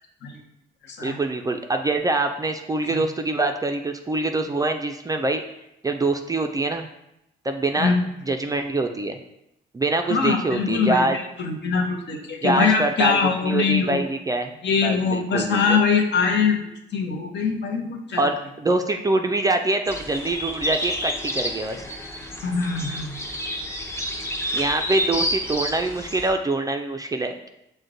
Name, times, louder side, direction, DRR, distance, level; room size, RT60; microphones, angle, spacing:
voice 1, 1.0-5.4 5.8-6.9 7.4-7.9 8.3-9.2 9.7-11.2 12.4-14.6 14.8-15.8 18.2-21.8 24.5-27.5, right 2 dB, 20° right, 5 dB, 0.3 m, -24 dB
voice 2, 10.1-14.0 14.6-16.6 16.9-18.3 22.4-23.1, left 5 dB, 65° left, 2 dB, 0.8 m, -23 dB
sound 1, 19.9-26.3, equal, 15° left, 0.7 m, -29 dB
6.1 x 2.2 x 3.9 m, 0.85 s
cardioid pair, 90°, 20 cm